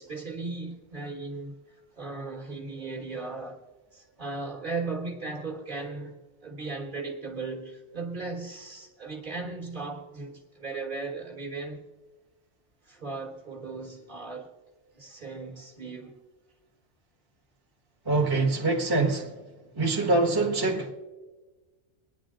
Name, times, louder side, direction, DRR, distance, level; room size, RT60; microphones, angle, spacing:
voice 1, 0.0-1.6 2.0-3.6 3.9-11.8 12.9-14.5 14.9-16.2, right 3 dB, 40° right, 1.7 m, -37 dB
voice 2, 18.0-19.3 19.7-20.9, right 3 dB, 20° right, 1.3 m, -24 dB
24.5 x 9.8 x 3.8 m
omnidirectional pair, 1.3 m